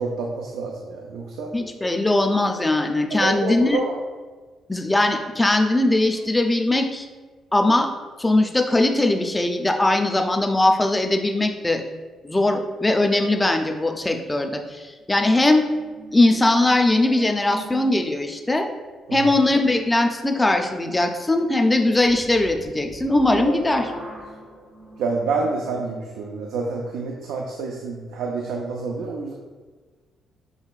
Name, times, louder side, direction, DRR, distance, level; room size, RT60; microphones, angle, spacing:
voice 1, 0.0-1.5 3.1-4.0 19.1-19.3 25.0-29.3, right 4 dB, 85° right, 0 dB, 0.4 m, -28 dB
voice 2, 1.5-3.8 4.7-7.1 7.5-7.9 8.2-11.8 12.2-15.6 16.1-18.7 19.1-23.9, left 2 dB, 15° left, 4 dB, 0.5 m, -20 dB
sound 1, 15.0-18.5 22.0-26.0, right 1 dB, 50° right, 1.0 m, -39 dB
6.3 x 3.0 x 2.4 m, 1.4 s
cardioid pair, 90°, 0 cm